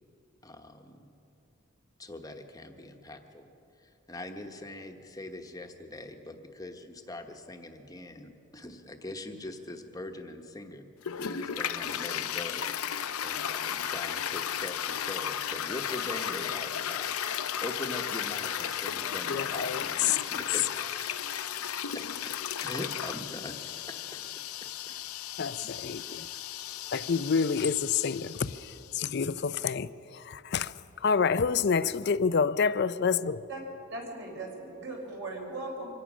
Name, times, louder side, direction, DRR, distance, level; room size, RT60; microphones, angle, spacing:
voice 1, 0.4-1.1 2.0-3.5 3.8-10.9 11.2-22.3 22.6-24.3 24.9-25.0, left 1 dB, 15° left, 1.1 m, -42 dB
Toilet flush, 11.0-28.9, left 9 dB, 90° left, 0.7 m, -35 dB
voice 2, 19.3-20.2 25.4-26.3 26.9-33.4, left 6 dB, 50° left, 0.4 m, -28 dB
voice 3, 33.9-35.9, right 2 dB, 55° right, 4.4 m, -38 dB
24.5 x 17.5 x 6.2 m
head